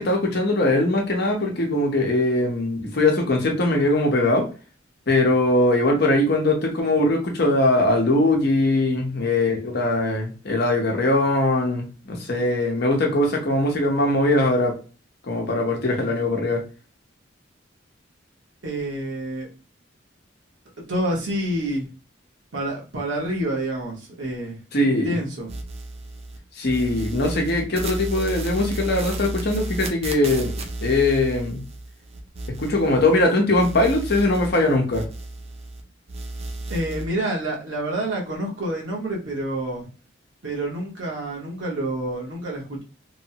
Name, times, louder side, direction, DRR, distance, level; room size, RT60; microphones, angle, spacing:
voice 1, 0.0-4.5 5.1-14.7 15.2-16.6 24.7-25.2 26.6-30.5 30.8-31.6 32.5-35.0, left 2 dB, 60° left, 0.8 m, -21 dB
voice 2, 18.6-19.5 20.9-21.9 22.5-25.5 36.7-39.8 40.4-42.8, right 1 dB, 80° right, 1.1 m, -28 dB
sound 1, 25.5-26.4 26.6-33.3 33.5-35.8 36.1-37.1, right 2 dB, 35° right, 0.5 m, -33 dB
3.1 x 2.1 x 2.8 m
head